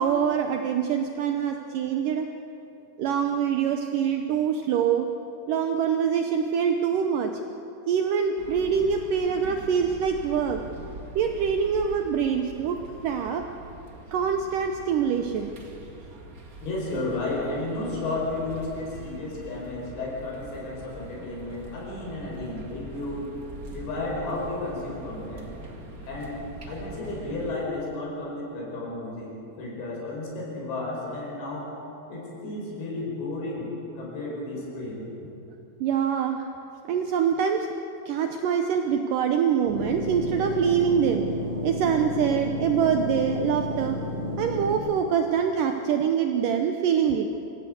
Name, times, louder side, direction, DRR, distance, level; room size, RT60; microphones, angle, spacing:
voice 1, 0.0-2.3 3.0-5.1 5.5-7.3 7.9-10.6 11.2-13.5 14.1-15.5 35.8-36.5 36.9-37.7 38.1-41.2 41.6-44.0 44.4-47.3, right 7 dB, 80° right, 5 dB, 1.9 m, -24 dB
sound 1, 8.4-27.5, right 2 dB, 65° right, 0.8 m, -43 dB
voice 2, 16.6-23.3 23.7-25.5 26.0-26.4 26.7-31.8 32.1-35.1, left 2 dB, 80° left, -2 dB, 7.4 m, -33 dB
sound 2, 39.7-44.7, equal, 40° right, 3.1 m, -31 dB
26.5 x 16.0 x 8.1 m, 2.8 s
omnidirectional pair, 5.1 m